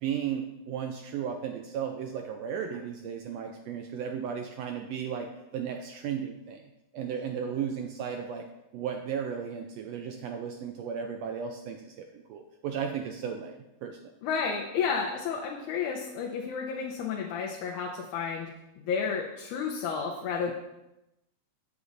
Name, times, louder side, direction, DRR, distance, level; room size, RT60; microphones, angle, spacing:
voice 1, 0.0-6.6 6.9-8.5 8.7-13.6 13.8-14.1, right 7 dB, 80° right, 4 dB, 1.5 m, -35 dB
voice 2, 14.2-20.5, left 6 dB, 90° left, 0 dB, 2.2 m, -32 dB
8.1 x 7.1 x 2.6 m, 0.92 s
omnidirectional pair, 3.4 m